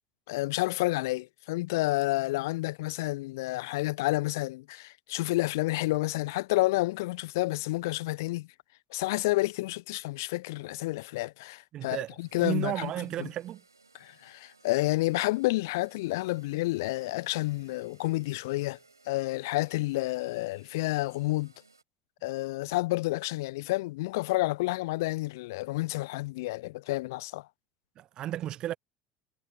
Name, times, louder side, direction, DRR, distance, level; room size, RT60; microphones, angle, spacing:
voice 1, 0.3-8.5 8.9-12.9 13.2-13.3 14.0-18.8 19.1-21.5 22.2-27.5, left 20 dB, 60° left, 0.6 m, -30 dB
voice 2, 11.7-13.6 28.0-28.8, right 12 dB, 40° right, 0.8 m, -33 dB
sound 1, 12.2-21.8, right 3 dB, 85° right, 6.7 m, -61 dB
figure-of-eight pair, 70°, 2 cm